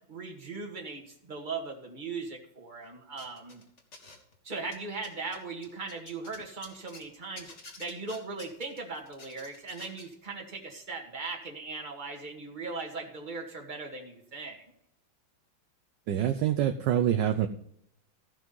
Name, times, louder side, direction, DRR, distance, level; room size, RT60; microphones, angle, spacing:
voice 1, 0.1-3.6 4.4-7.5 7.8-14.6, right 4 dB, 25° right, 0 dB, 2.0 m, -39 dB
sound 1, 3.2-4.3 4.6-7.1 7.4-10.1, left 2 dB, 35° left, 2.1 m, -49 dB
voice 2, 16.1-17.5, right 10 dB, 70° right, 6 dB, 1.2 m, -26 dB
15.5 x 6.0 x 5.3 m, 0.75 s
omnidirectional pair, 2.2 m